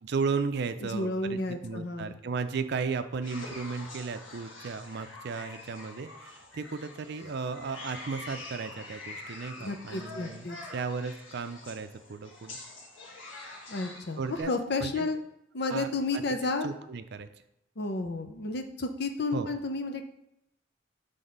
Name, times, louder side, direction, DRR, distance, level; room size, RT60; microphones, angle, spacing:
voice 1, 0.0-10.5 10.7-12.6 14.2-14.5 14.8-15.1 15.7-16.2 16.6-17.3 19.3-19.5, right 4 dB, 60° right, 10 dB, 0.5 m, -35 dB
voice 2, 0.8-2.1 9.6-10.6 13.7-14.2 14.4-15.2 15.5-16.7 17.8-20.0, left 3 dB, 60° left, 6 dB, 0.7 m, -32 dB
sound 1, 3.2-14.4, left 2 dB, 85° left, 1.5 m, -45 dB
6.0 x 3.5 x 5.3 m, 0.83 s
head